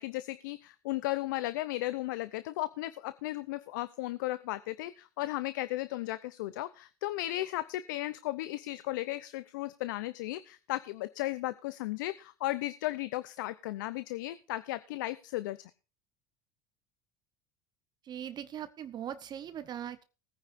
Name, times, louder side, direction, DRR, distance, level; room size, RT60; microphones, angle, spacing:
voice 1, 0.0-15.6, left 17 dB, 80° left, 14 dB, 0.7 m, -35 dB
voice 2, 18.0-20.0, right 10 dB, 45° right, 12 dB, 0.9 m, -40 dB
20.0 x 9.7 x 2.6 m, 0.33 s
hypercardioid pair, 85°, 10 cm